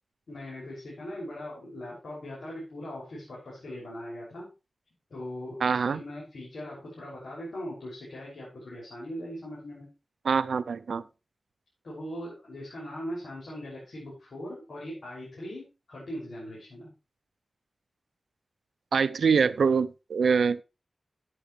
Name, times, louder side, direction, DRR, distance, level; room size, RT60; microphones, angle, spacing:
voice 1, 0.3-4.5 5.1-9.9 11.8-16.9 19.3-19.5, equal, 80° left, 6.4 m, -40 dB
voice 2, 5.6-6.0 10.3-11.0 18.9-20.6, right 5 dB, 90° right, 0.5 m, -24 dB
14.0 x 9.1 x 3.3 m
wide cardioid pair, 80°, 0 cm